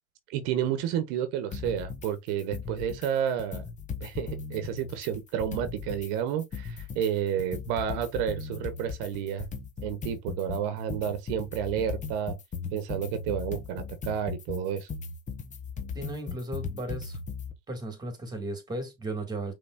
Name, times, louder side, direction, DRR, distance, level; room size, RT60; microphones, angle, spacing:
voice 1, 0.3-3.6 4.0-9.5 9.8-12.4 12.7-14.9, right 9 dB, 65° right, 1.1 m, -30 dB
sound 1, 1.5-2.1 2.4-3.1 3.4-6.1 6.4-17.5, left 5 dB, 25° left, 0.9 m, -37 dB
voice 2, 15.9-17.2 17.7-19.5, right 2 dB, 15° right, 2.2 m, -35 dB
5.5 x 3.7 x 2.5 m
supercardioid pair, 125°, 30 cm